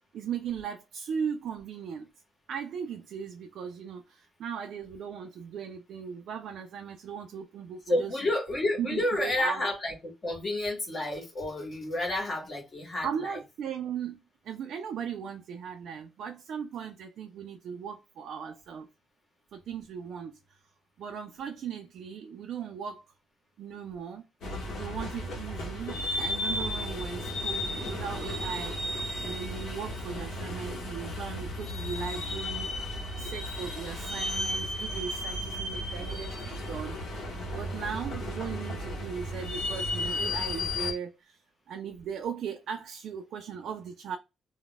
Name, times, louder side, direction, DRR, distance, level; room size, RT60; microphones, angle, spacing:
voice 1, 0.1-2.1 2.5-8.2 8.8-9.7 13.0-18.9 19.5-20.6 21.0-23.0 23.6-24.3 24.8-28.8 29.2-32.7 33.1-37.0 37.5-41.4 41.7-44.2, right 7 dB, 60° right, 0.3 m, -38 dB
voice 2, 7.9-9.9 10.2-13.4, left 1 dB, 30° left, 1.0 m, -30 dB
sound 1, 24.4-40.9, left 1 dB, 60° left, 1.0 m, -34 dB
2.3 x 2.1 x 3.8 m
cardioid pair, 180°, 0 cm